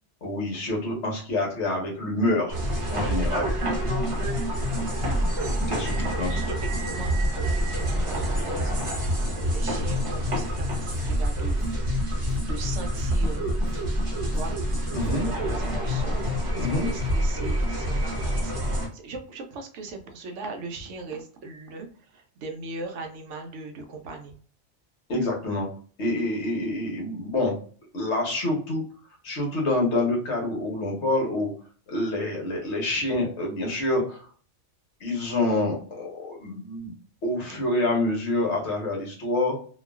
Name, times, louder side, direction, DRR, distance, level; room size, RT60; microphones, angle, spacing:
voice 1, 0.2-2.6 2.8-3.5 5.7-6.4 14.9-15.3 16.5-16.9 25.1-25.7 26.0-27.6 27.9-28.8 29.2-31.5 31.9-34.3 35.0-36.9 37.2-39.5, left 2 dB, 70° left, -1 dB, 1.2 m, -27 dB
sound 1, 2.5-18.9, equal, 30° right, 0.7 m, -26 dB
voice 2, 3.8-4.6 6.3-7.1 7.4-12.1 12.4-13.5 14.2-16.2 16.6-24.4 37.5-37.8, right 3 dB, 80° right, 4 dB, 0.9 m, -40 dB
Drum kit, 10.6-11.1 11.4-12.5 12.8-13.8 14.2-15.2 15.5-15.7, right 4 dB, 50° left, 1.2 m, -44 dB
2.9 x 2.3 x 2.3 m, 0.43 s
omnidirectional pair, 1.2 m